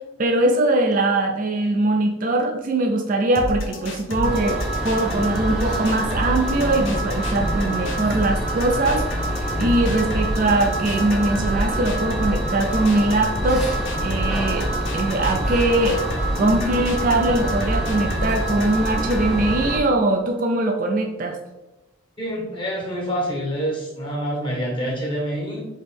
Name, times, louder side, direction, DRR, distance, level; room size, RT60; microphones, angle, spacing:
voice 1, 0.2-9.1 9.3-13.7 14.0-14.7 14.9-16.0 16.4-21.4, right 2 dB, 40° right, 3 dB, 0.4 m, -21 dB
sound 1, 3.4-19.3, equal, 70° left, 0.7 m, -30 dB
sound 2, 4.2-19.8, right 1 dB, ahead, 0.7 m, -26 dB
voice 2, 22.2-25.7, equal, 25° left, -2 dB, 1.0 m, -27 dB
4.2 x 3.0 x 3.5 m, 0.97 s
head